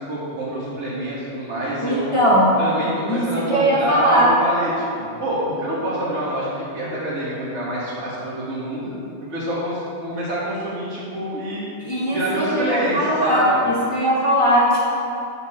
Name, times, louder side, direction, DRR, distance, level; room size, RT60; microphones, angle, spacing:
voice 1, 0.0-2.1 2.6-8.9 9.3-11.7 12.1-13.6, right 1 dB, 85° right, -8 dB, 1.8 m, -26 dB
voice 2, 1.8-2.5 3.1-4.3 11.8-14.8, equal, 30° left, -6 dB, 1.2 m, -19 dB
13.0 x 4.6 x 4.3 m, 2.6 s
omnidirectional pair, 1.2 m